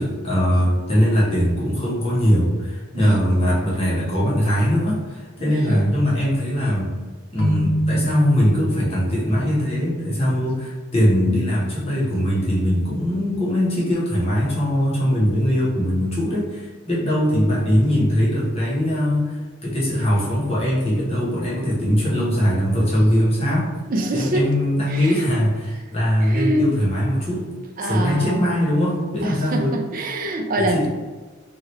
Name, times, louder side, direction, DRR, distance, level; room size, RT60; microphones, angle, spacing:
voice 1, 0.0-6.9 7.3-23.7 24.1-27.5 27.8-29.8 30.6-30.9, equal, 30° left, -7 dB, 0.9 m, -21 dB
voice 2, 2.9-3.6 5.4-5.9 23.9-24.4 24.9-25.2 26.2-26.8 27.8-28.5 29.2-30.9, right 1 dB, 40° right, 3 dB, 0.4 m, -25 dB
Keyboard (musical), 7.4-9.2, equal, 60° left, 0.6 m, -24 dB
2.8 x 2.4 x 3.0 m, 1.3 s
head